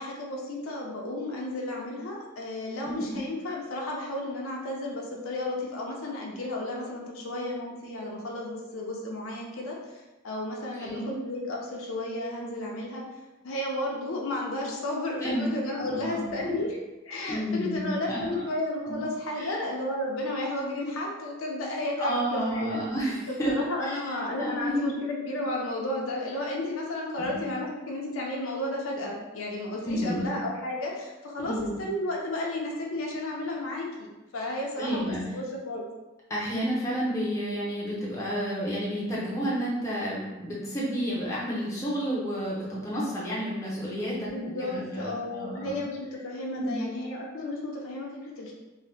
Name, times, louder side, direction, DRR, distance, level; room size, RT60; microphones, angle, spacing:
voice 1, 0.0-13.0 13.4-16.8 17.0-22.8 23.3-35.9 44.1-48.5, left 1 dB, 75° left, -1 dB, 0.5 m, -33 dB
voice 2, 2.8-3.2 10.8-11.1 15.2-15.5 15.8-16.6 17.3-18.5 18.8-19.1 19.3-19.5 22.0-23.5 23.9-24.9 27.2-27.4 29.8-30.3 31.4-31.8 34.8-35.2 36.3-44.3 44.6-45.8 46.5-46.8, equal, 15° left, -6 dB, 0.6 m, -31 dB
2.7 x 2.1 x 3.3 m, 1.1 s
head